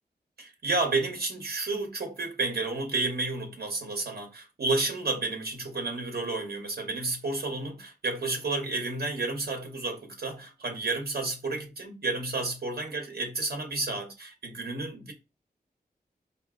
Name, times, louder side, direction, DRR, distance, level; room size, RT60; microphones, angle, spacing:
voice 1, 0.4-15.1, right 3 dB, 75° right, 0.8 m, -31 dB
4.4 x 2.6 x 2.4 m
wide cardioid pair, 100°, 16 cm